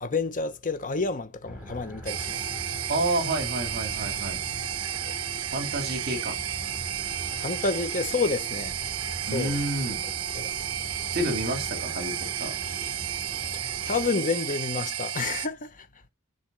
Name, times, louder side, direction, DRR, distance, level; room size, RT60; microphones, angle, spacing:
voice 1, 0.0-2.4 5.0-5.1 7.4-8.8 9.3-9.6 10.3-10.5 13.5-15.9, left 4 dB, 35° left, 0.9 m, -29 dB
sound 1, 1.5-14.1, equal, 5° right, 2.5 m, -41 dB
sound 2, 2.1-15.5, right 11 dB, 65° right, 1.0 m, -32 dB
voice 2, 2.9-4.4 5.5-6.4 9.3-10.0 11.1-12.6, right 1 dB, 45° right, 2.5 m, -29 dB
10.0 x 4.5 x 6.6 m
head